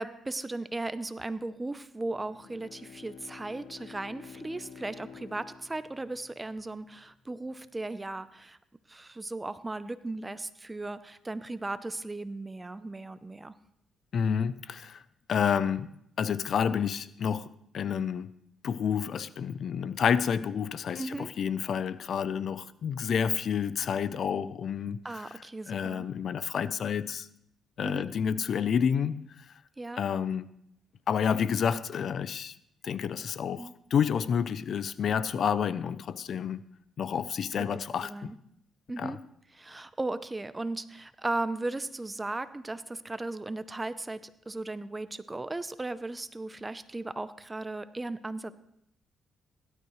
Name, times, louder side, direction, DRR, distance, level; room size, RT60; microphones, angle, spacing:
voice 1, 0.0-8.6 8.9-13.5 21.0-21.3 25.0-26.1 27.8-28.1 29.8-30.0 33.6-33.7 37.6-38.4 38.9-39.2 39.5-48.5, right 2 dB, 15° right, 0.6 m, -36 dB
Bowed string instrument, 2.0-6.8, left 7 dB, 80° left, 1.0 m, -50 dB
voice 2, 14.1-15.0 15.3-15.9 16.2-18.3 18.6-25.2 25.7-27.3 27.8-29.2 30.0-30.5 31.1-32.5 32.8-36.6 37.0-38.3 39.0-39.2, left 7 dB, 60° left, 0.5 m, -29 dB
17.0 x 12.5 x 3.1 m
cardioid pair, 90°, 0 cm